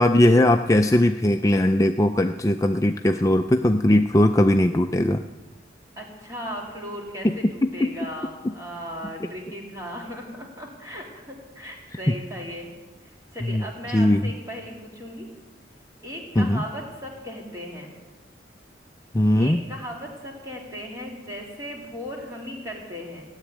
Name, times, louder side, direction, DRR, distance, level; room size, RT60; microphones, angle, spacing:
voice 1, 0.0-5.2 7.2-7.5 7.8-8.1 13.4-13.6 13.9-14.3 16.4-16.6 19.1-19.6, left 1 dB, 15° left, 6 dB, 0.4 m, -19 dB
voice 2, 6.0-12.7 13.0-15.3 16.0-17.9 19.4-23.2, equal, 20° right, -1 dB, 3.4 m, -37 dB
16.5 x 8.2 x 10.0 m, 1.2 s
head